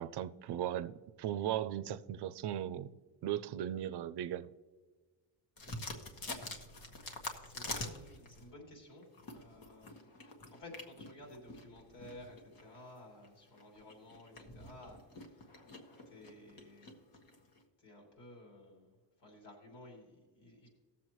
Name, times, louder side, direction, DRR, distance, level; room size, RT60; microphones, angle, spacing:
voice 1, 0.0-2.9 3.2-4.5, right 11 dB, 65° right, 0.5 m, -37 dB
sound 1, 5.6-8.5 9.0-17.6, left 2 dB, 50° left, 1.4 m, -47 dB
voice 2, 7.4-10.1 10.5-15.5 16.0-17.0 17.8-20.7, left 1 dB, 70° left, 3.3 m, -54 dB
18.5 x 7.2 x 3.1 m
cardioid pair, 145°, 43 cm